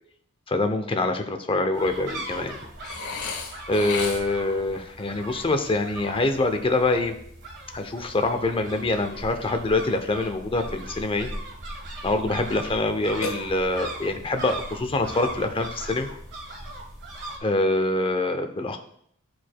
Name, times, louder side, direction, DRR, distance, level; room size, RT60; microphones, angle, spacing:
voice 1, 0.5-2.6 3.7-7.1 7.7-11.3 12.0-16.1 17.4-18.8, left 2 dB, 25° left, 6 dB, 0.6 m, -25 dB
sound 1, 1.7-17.4, right 1 dB, 50° right, 1.4 m, -39 dB
Burping eructation, 2.8-4.5 13.2-14.0, left 4 dB, 75° left, 1.3 m, -33 dB
12.0 x 4.7 x 2.2 m, 0.67 s
head